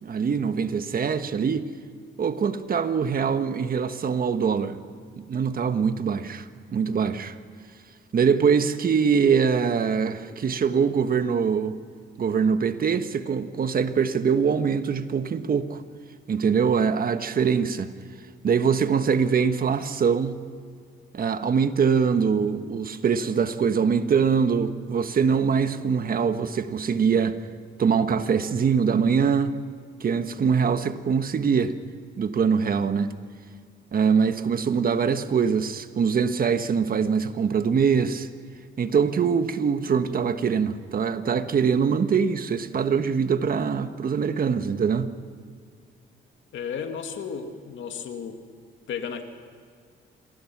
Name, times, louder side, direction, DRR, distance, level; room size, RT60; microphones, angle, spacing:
voice 1, 0.0-1.7 2.2-4.8 5.3-6.4 6.7-7.4 8.1-11.8 12.2-15.8 16.3-17.9 18.4-20.4 21.1-27.4 27.8-29.6 30.0-31.7 32.2-33.1 33.9-38.3 38.8-45.1, right 6 dB, 45° right, 1.4 m, -23 dB
voice 2, 46.5-48.4 48.9-49.2, left 7 dB, 70° left, 2.3 m, -33 dB
27.0 x 19.5 x 6.1 m
cardioid pair, 90°, 20 cm